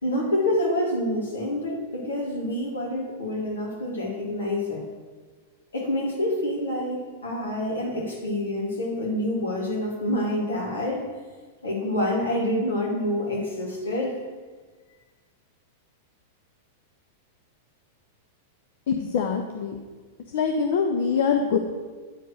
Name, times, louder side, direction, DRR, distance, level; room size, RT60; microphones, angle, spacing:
voice 1, 0.0-4.8 5.7-11.0 11.6-14.2, left 1 dB, 75° left, -3 dB, 2.6 m, -27 dB
voice 2, 18.9-19.8 20.3-21.6, left 6 dB, 60° left, 4 dB, 0.6 m, -24 dB
9.1 x 4.6 x 6.3 m, 1.4 s
figure-of-eight pair, 95°, 0 cm